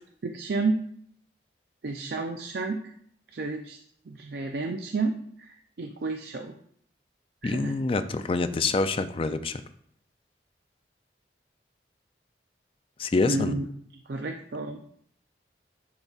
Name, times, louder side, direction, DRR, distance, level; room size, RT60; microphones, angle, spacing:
voice 1, 0.2-0.7 1.8-2.8 3.3-3.8 4.1-6.5 7.4-7.7 13.3-13.7 14.1-15.0, right 3 dB, 60° right, 5 dB, 0.4 m, -31 dB
voice 2, 7.4-9.6 13.0-13.6, left 3 dB, 30° left, 10 dB, 0.3 m, -26 dB
10.5 x 4.0 x 2.4 m, 0.65 s
head